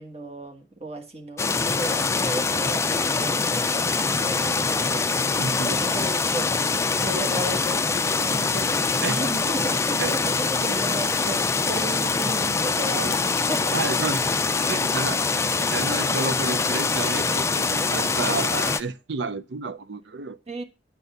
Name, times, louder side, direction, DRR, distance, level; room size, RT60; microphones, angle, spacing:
voice 1, 0.0-13.9 20.5-20.6, right 1 dB, 35° right, 1.4 m, -35 dB
sound 1, 1.4-18.8, left 4 dB, 15° left, 0.4 m, -24 dB
voice 2, 5.4-5.8 9.0-9.3 10.0-10.1 10.7-10.8 13.7-14.3 14.7-15.2 15.5-20.4, right 4 dB, 65° right, 0.6 m, -31 dB
9.5 x 4.1 x 6.7 m
head